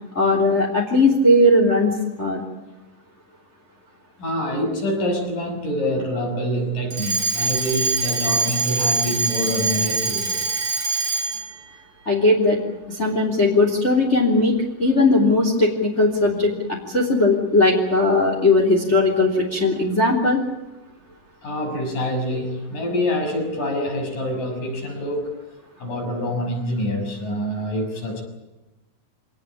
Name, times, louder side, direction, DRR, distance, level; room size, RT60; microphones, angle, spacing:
voice 1, 0.1-2.4 12.0-12.6 12.9-20.4, left 2 dB, 15° left, 0 dB, 3.3 m, -18 dB
voice 2, 4.2-10.4 21.4-25.3 25.8-28.2, left 1 dB, 50° left, 3 dB, 7.8 m, -26 dB
Alarm, 6.9-11.5, right 3 dB, 40° right, 3.9 m, -23 dB
26.0 x 19.0 x 8.7 m, 1.0 s
omnidirectional pair, 4.8 m